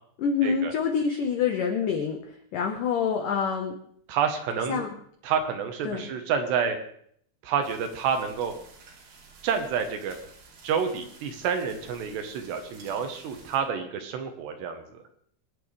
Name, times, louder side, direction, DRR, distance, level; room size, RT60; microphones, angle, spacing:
voice 1, 0.2-3.8 4.7-4.9 5.8-6.1, left 6 dB, 85° left, 3 dB, 1.9 m, -26 dB
voice 2, 4.1-4.8 5.2-6.8 7.4-8.5 9.4-10.2 10.6-15.0, right 7 dB, 70° right, 6 dB, 2.9 m, -28 dB
sound 1, 7.6-13.6, right 4 dB, 85° right, 5.4 m, -52 dB
25.0 x 9.9 x 3.3 m, 0.65 s
omnidirectional pair, 5.5 m